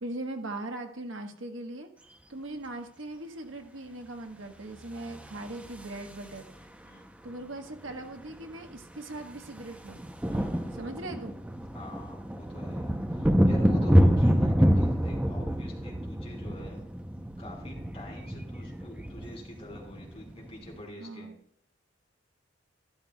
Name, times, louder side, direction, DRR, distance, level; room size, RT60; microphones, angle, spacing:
voice 1, 0.0-1.9 2.3-6.5 7.2-10.1 10.7-11.4 21.0-21.4, right 2 dB, 75° right, 4 dB, 1.3 m, -39 dB
sound 1, 5.0-6.6 7.9-8.0 8.2-8.4 8.7-20.8, equal, 5° right, 0.6 m, -27 dB
voice 2, 6.5-7.1 10.3-10.8 11.7-16.8 17.4-21.3, left 1 dB, 30° left, -3 dB, 4.6 m, -46 dB
13.0 x 12.0 x 2.3 m, 0.68 s
head